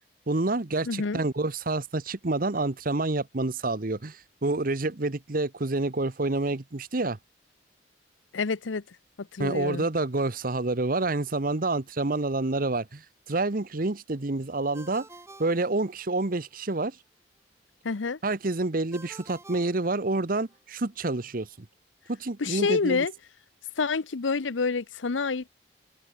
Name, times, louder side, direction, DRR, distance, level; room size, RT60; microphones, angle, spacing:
voice 1, 0.3-7.2 9.4-15.1 15.4-17.0 18.2-21.7 22.1-23.0, right 2 dB, 50° right, 1.0 m, -28 dB
voice 2, 0.8-1.2 8.3-8.8 9.2-9.9 17.8-18.2 22.4-23.1 23.8-25.5, left 4 dB, 90° left, 0.8 m, -28 dB
Ringtone, 14.7-16.4 18.9-20.6, right 2 dB, 15° right, 2.7 m, -50 dB
head